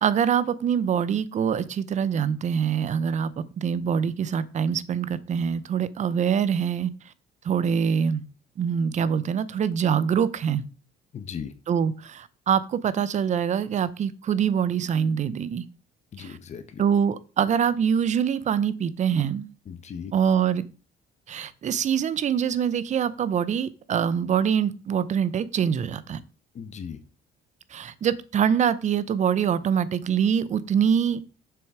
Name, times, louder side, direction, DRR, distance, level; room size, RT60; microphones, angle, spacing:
voice 1, 0.0-3.3 3.6-6.9 7.5-8.2 8.6-10.7 11.7-15.6 16.2-16.3 16.8-19.5 20.1-20.6 21.3-26.2 27.7-31.2, right 7 dB, 45° right, 0.7 m, -24 dB
voice 2, 11.1-11.5 16.1-16.8 19.7-20.1 26.5-27.0, left 7 dB, 40° left, 1.0 m, -37 dB
7.1 x 6.2 x 4.8 m
cardioid pair, 110°, 17 cm